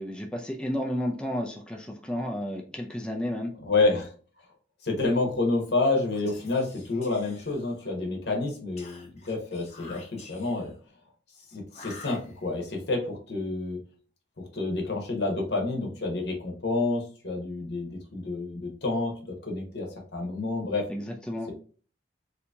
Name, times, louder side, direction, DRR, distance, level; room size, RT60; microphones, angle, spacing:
voice 1, 0.0-3.5 20.9-21.5, equal, 5° left, 0 dB, 0.4 m, -32 dB
voice 2, 3.6-4.1 4.8-10.7 11.5-13.8 14.5-20.9, left 3 dB, 60° left, 1 dB, 0.9 m, -29 dB
Whispering, 6.0-8.0 8.8-10.8 11.7-12.7, left 3 dB, 35° left, 0.7 m, -49 dB
2.8 x 2.7 x 3.4 m, 0.41 s
head